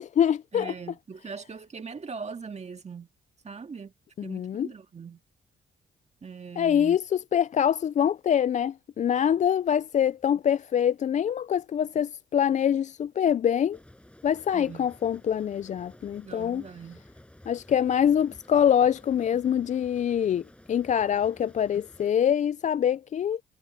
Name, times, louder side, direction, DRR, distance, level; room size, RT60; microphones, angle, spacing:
voice 1, 0.0-0.7 4.2-4.7 6.6-13.8 14.2-16.7 17.5-23.4, left 9 dB, 40° left, 0.4 m, -25 dB
voice 2, 0.5-3.1 3.4-3.9 4.2-5.2 6.2-7.0 14.5-14.9 16.2-17.0, right 5 dB, 35° right, 2.0 m, -41 dB
sound 1, 13.7-22.1, left 1 dB, 5° left, 7.3 m, -53 dB
cardioid pair, 90°, 20 cm